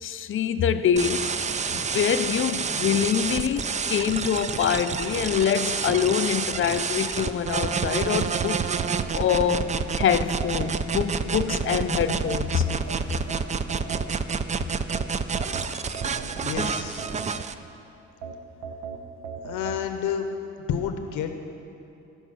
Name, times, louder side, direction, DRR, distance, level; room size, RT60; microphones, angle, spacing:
voice 1, 0.0-1.3 1.7-8.6 9.1-12.7, left 8 dB, 45° left, 12 dB, 0.5 m, -25 dB
sound 1, 1.0-17.5, right 5 dB, 25° right, 0.4 m, -28 dB
sound 2, 8.3-11.1 11.6-14.4 14.9-17.7 18.2-19.8, right 5 dB, 75° right, 1.0 m, -38 dB
voice 2, 16.4-17.1 19.5-20.3 20.7-21.3, left 8 dB, 90° left, 7 dB, 0.7 m, -30 dB
13.5 x 5.5 x 6.2 m, 2.7 s
cardioid pair, 90°, 30 cm